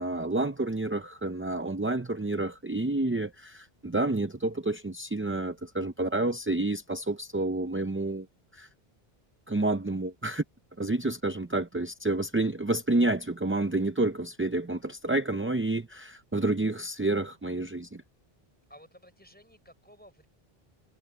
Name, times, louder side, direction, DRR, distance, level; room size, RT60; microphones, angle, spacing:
voice 1, 0.0-8.3 8.5-8.7 9.5-10.4 10.8-18.0, right 2 dB, 15° right, 0.5 m, -29 dB
voice 2, 18.7-20.3, equal, 10° left, 5.3 m, -54 dB
omnidirectional pair, 1.0 m